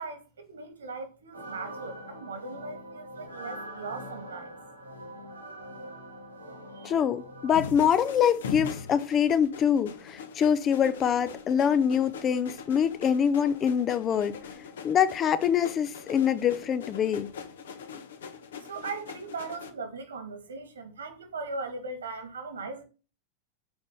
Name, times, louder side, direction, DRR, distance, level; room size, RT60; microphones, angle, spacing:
voice 1, 0.0-4.6 5.1-5.2 6.7-6.9 18.6-22.8, right 4 dB, 70° right, 2.7 m, -39 dB
sound 1, 1.3-7.6, right 1 dB, 85° right, 3.3 m, -43 dB
voice 2, 6.8-14.4 14.8-17.3, left 8 dB, 25° left, 0.8 m, -25 dB
sound 2, 7.5-19.7, left 6 dB, 60° left, 1.3 m, -42 dB
7.9 x 5.4 x 7.1 m
figure-of-eight pair, 90°, 0 cm